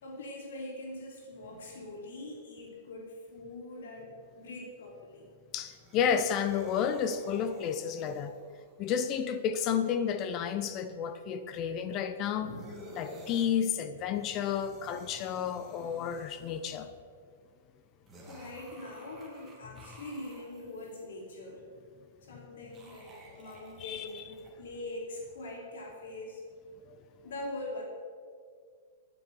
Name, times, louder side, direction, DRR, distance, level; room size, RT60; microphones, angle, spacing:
voice 1, 0.0-5.3 12.4-12.6 18.3-21.6 22.2-26.4 27.2-27.8, left 2 dB, 85° left, 3.1 m, -43 dB
voice 2, 5.5-8.3 8.8-12.5 12.9-16.9 23.8-24.2 26.9-27.0, left 8 dB, 25° left, 0.6 m, -31 dB
sound 1, 5.7-8.7 12.4-13.5 14.0-16.8 18.1-21.0 22.6-24.5, right 1 dB, 10° right, 2.2 m, -52 dB
16.0 x 9.2 x 5.4 m
supercardioid pair, 170°, 0 cm